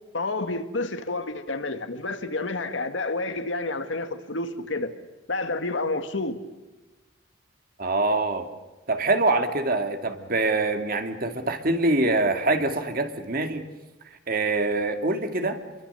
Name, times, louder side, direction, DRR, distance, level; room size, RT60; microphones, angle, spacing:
voice 1, 0.1-4.9 5.3-6.4, left 2 dB, 75° left, 1.9 m, -29 dB
voice 2, 7.8-8.5 8.9-13.6 14.3-15.6, right 2 dB, 50° right, 2.2 m, -24 dB
28.0 x 23.0 x 6.9 m
head